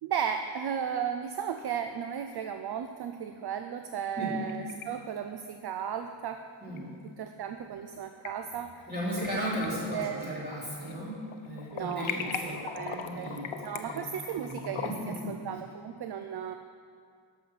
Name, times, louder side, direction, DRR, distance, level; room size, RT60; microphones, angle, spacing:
voice 1, 0.0-6.4 7.2-8.8 9.9-10.2 11.7-12.1 12.5-13.3 13.6-14.9 15.3-16.5, right 8 dB, 55° right, 7 dB, 0.5 m, -35 dB
sound 1, 4.1-4.9 5.2-5.3 6.8-6.9 7.9-8.3 8.8-9.3 9.6-11.0 11.3-15.2, left 7 dB, 80° left, 0.8 m, -39 dB
voice 2, 8.9-12.6 13.0-14.1 14.4-15.4, equal, 20° right, -7 dB, 3.2 m, -36 dB
11.5 x 6.9 x 5.6 m, 2.2 s
wide cardioid pair, 160°, 47 cm